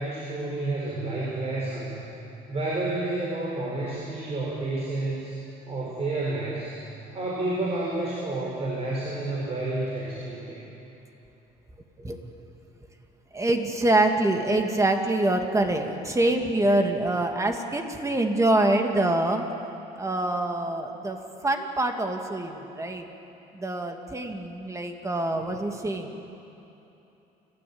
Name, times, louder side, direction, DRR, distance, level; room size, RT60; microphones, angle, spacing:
voice 1, 0.0-2.0 2.5-5.3 5.7-6.8 7.1-10.6, right 2 dB, 40° right, -4 dB, 4.9 m, -30 dB
voice 2, 13.3-19.4 20.0-21.2 21.4-23.1 23.5-26.2, right 2 dB, 20° right, 4 dB, 2.2 m, -25 dB
29.5 x 13.0 x 8.7 m, 3.0 s
cardioid pair, 110°, 17 cm